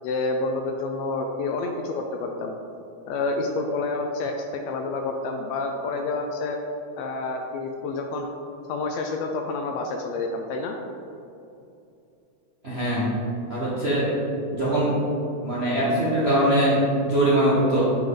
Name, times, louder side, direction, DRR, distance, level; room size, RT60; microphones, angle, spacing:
voice 1, 0.0-2.5 3.1-6.6 7.0-8.3 8.7-10.8 14.5-14.6, left 3 dB, 80° left, 3 dB, 1.6 m, -28 dB
voice 2, 12.6-13.1 13.5-14.1 14.5-14.9 15.4-17.8, right 1 dB, 45° right, -9 dB, 0.8 m, -22 dB
7.1 x 6.0 x 3.8 m, 2.7 s
omnidirectional pair, 3.3 m